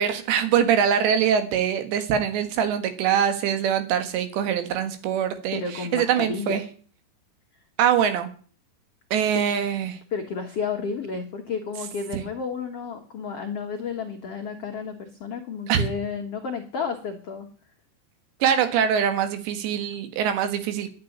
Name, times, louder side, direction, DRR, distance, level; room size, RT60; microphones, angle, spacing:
voice 1, 0.0-6.6 7.8-8.3 9.1-10.0 12.1-12.2 15.7-15.9 18.4-20.9, right 8 dB, 80° right, 9 dB, 3.8 m, -23 dB
voice 2, 5.5-6.6 10.1-17.5, left 5 dB, 70° left, 2 dB, 1.4 m, -31 dB
12.0 x 8.6 x 9.8 m, 0.44 s
omnidirectional pair, 5.0 m